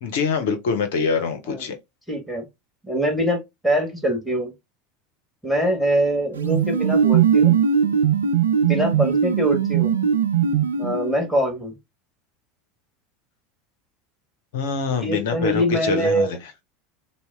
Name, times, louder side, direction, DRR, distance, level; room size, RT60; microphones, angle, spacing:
voice 1, 0.0-1.8 14.5-16.3, left 5 dB, 65° left, 0.6 m, -24 dB
voice 2, 2.1-2.4 2.8-4.5 5.4-7.6 8.6-10.0 10.8-11.7 15.0-16.4, right 1 dB, ahead, 1.6 m, -23 dB
sound 1, 6.4-11.3, right 8 dB, 80° right, 0.4 m, -20 dB
4.1 x 2.1 x 3.4 m
figure-of-eight pair, 75°, 0 cm